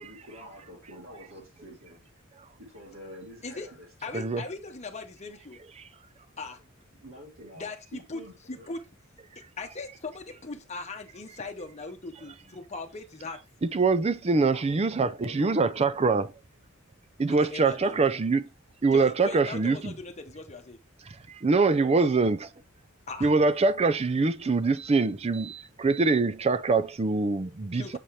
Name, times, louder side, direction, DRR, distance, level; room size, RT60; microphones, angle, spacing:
voice 1, 0.0-2.0 2.6-4.2 7.0-8.7 14.4-16.3 21.7-22.0, equal, 70° right, 3.2 m, -47 dB
voice 2, 4.0-5.6 6.4-6.6 7.6-8.2 8.5-8.8 9.3-13.4 17.3-18.1 18.9-20.8 23.1-23.3 27.7-28.0, left 3 dB, 30° left, 1.0 m, -39 dB
voice 3, 13.6-16.3 17.2-18.5 18.8-19.9 21.3-22.5 23.2-28.0, right 4 dB, 30° right, 0.4 m, -24 dB
7.6 x 4.2 x 3.2 m
head